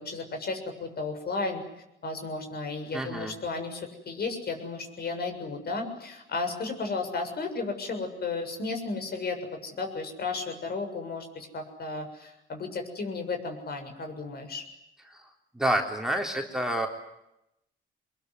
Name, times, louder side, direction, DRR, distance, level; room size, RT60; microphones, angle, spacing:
voice 1, 0.0-1.6 2.0-14.6, left 3 dB, 55° left, 5 dB, 7.2 m, -34 dB
voice 2, 2.9-3.3 15.1-15.3 15.5-16.9, right 1 dB, ahead, 1 dB, 3.9 m, -28 dB
25.0 x 22.0 x 9.7 m, 0.84 s
cardioid pair, 90°, 20 cm